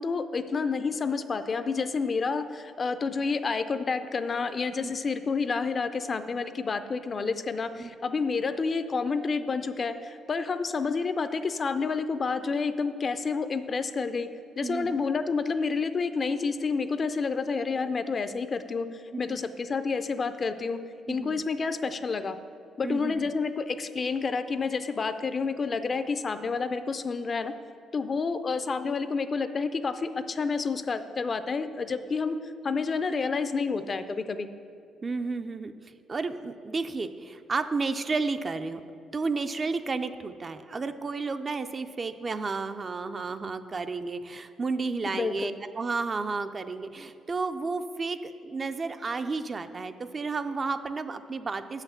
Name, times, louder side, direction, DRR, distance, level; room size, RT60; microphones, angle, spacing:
voice 1, 0.0-14.3 14.6-18.9 19.2-20.8 21.1-22.4 22.8-27.5 27.9-34.5 45.1-45.5, left 4 dB, 40° left, 10 dB, 0.4 m, -29 dB
voice 2, 14.6-15.0 19.1-19.4 21.1-21.4 22.8-23.3 35.0-35.7 36.1-38.8 39.1-51.8, right 4 dB, 35° right, 9 dB, 0.4 m, -32 dB
6.5 x 5.7 x 6.9 m, 2.5 s
cardioid pair, 90°, 0 cm